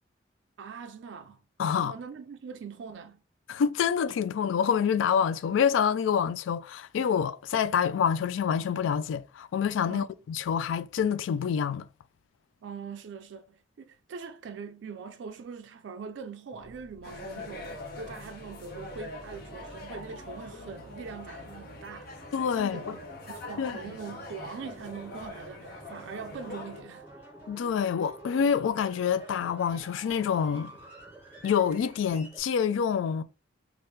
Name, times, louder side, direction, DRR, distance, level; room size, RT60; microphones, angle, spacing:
voice 1, 0.6-1.4 1.7-3.2 9.8-10.1 12.6-22.1 22.5-27.1, right 5 dB, 70° right, 0.3 m, -42 dB
voice 2, 1.6-1.9 3.5-11.9 22.3-23.0 23.6-23.8 27.5-30.7 31.4-33.2, left 7 dB, 85° left, 0.3 m, -27 dB
sound 1, 16.5-32.4, right 1 dB, 10° right, 1.5 m, -50 dB
sound 2, 17.0-26.8, left 2 dB, 55° left, 0.7 m, -43 dB
3.1 x 2.4 x 3.1 m
head